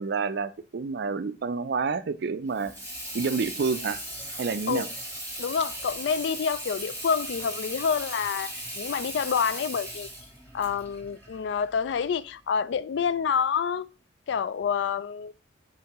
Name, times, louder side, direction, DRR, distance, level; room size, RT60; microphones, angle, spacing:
voice 1, 0.0-2.7 3.1-4.0 4.4-4.9, right 4 dB, 55° right, 0.4 m, -28 dB
Water tap faucet / Sink (filling or washing), 2.5-12.1, equal, 10° left, 3.4 m, -38 dB
voice 2, 5.4-10.1 10.5-13.9 14.3-15.3, left 6 dB, 60° left, 0.3 m, -28 dB
9.2 x 3.6 x 3.0 m
head